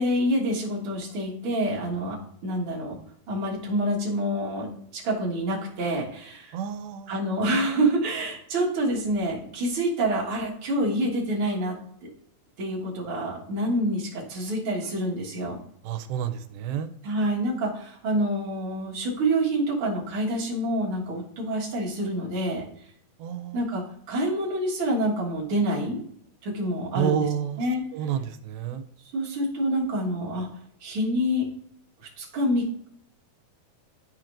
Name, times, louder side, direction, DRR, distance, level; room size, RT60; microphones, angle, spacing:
voice 1, 0.0-2.2 2.4-3.0 3.3-4.7 4.9-6.5 7.1-11.8 12.0-12.1 12.6-15.6 17.0-22.6 23.5-26.0 26.4-27.3 27.6-27.8 29.1-30.5 30.8-31.4 32.2-32.9, right 1 dB, 50° right, -4 dB, 1.8 m, -27 dB
voice 2, 6.5-7.1 15.8-16.9 23.2-23.6 26.9-27.6 27.9-28.8, right 9 dB, 90° right, 10 dB, 2.4 m, -29 dB
11.5 x 4.4 x 2.5 m, 0.69 s
omnidirectional pair, 4.2 m